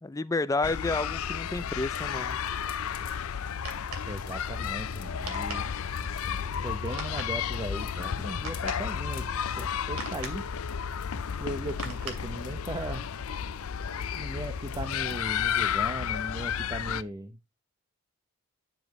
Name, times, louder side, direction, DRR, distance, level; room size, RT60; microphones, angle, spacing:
voice 1, 0.0-2.4, left 3 dB, 15° left, 0.4 m, -30 dB
sound 1, 0.6-17.0, left 8 dB, 70° left, 0.5 m, -32 dB
sound 2, 1.5-16.0, left 2 dB, 40° left, 1.8 m, -48 dB
sound 3, 3.3-12.9, right 3 dB, 70° right, 2.4 m, -45 dB
voice 2, 4.0-5.7 6.6-9.2 9.6-10.4 11.4-13.0 14.2-17.5, right 1 dB, 20° right, 0.9 m, -38 dB
9.9 x 7.1 x 3.1 m
head